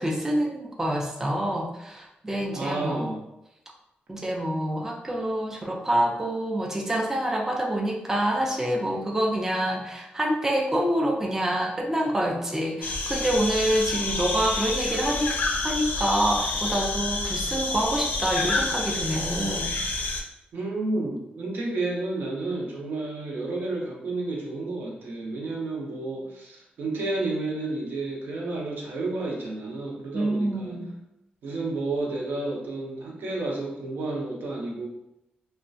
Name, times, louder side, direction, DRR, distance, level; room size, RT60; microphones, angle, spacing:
voice 1, 0.0-3.1 4.1-19.7 30.1-30.9, right 1 dB, 15° right, -1 dB, 0.3 m, -27 dB
voice 2, 2.4-3.2 20.5-30.8 31.4-34.9, right 2 dB, 75° right, -2 dB, 0.6 m, -31 dB
sound 1, 12.8-20.2, left 2 dB, 65° left, 0.3 m, -28 dB
2.3 x 2.1 x 2.5 m, 0.85 s
cardioid pair, 100°, 3 cm